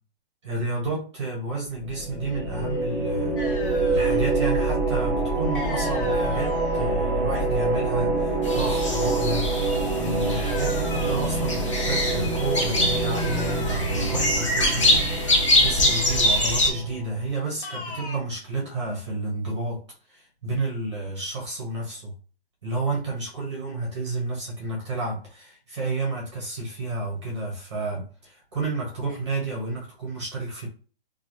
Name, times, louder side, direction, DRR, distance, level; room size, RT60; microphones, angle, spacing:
voice 1, 0.4-19.8 20.1-22.1 22.6-30.7, right 2 dB, 25° right, -2 dB, 0.9 m, -30 dB
sound 1, 1.8-17.2, right 2 dB, 15° left, 1.0 m, -26 dB
sound 2, 3.4-4.4 5.5-6.8 10.5-11.8 13.2-14.5 17.6-18.2, left 3 dB, 55° left, 0.9 m, -39 dB
sound 3, 8.4-16.7, left 1 dB, 30° left, 0.5 m, -24 dB
3.0 x 2.4 x 2.6 m, 0.37 s
hypercardioid pair, 175°, 32 cm